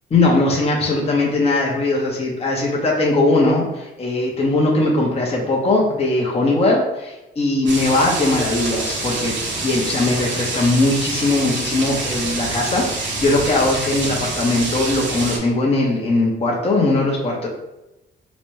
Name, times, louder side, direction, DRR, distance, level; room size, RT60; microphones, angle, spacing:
voice 1, 0.1-9.3 9.6-17.5, left 2 dB, 30° left, -2 dB, 0.8 m, -19 dB
sound 1, 7.7-15.4, right 3 dB, 65° right, 0.8 m, -26 dB
3.9 x 2.2 x 3.2 m, 0.96 s
cardioid pair, 90°, 20 cm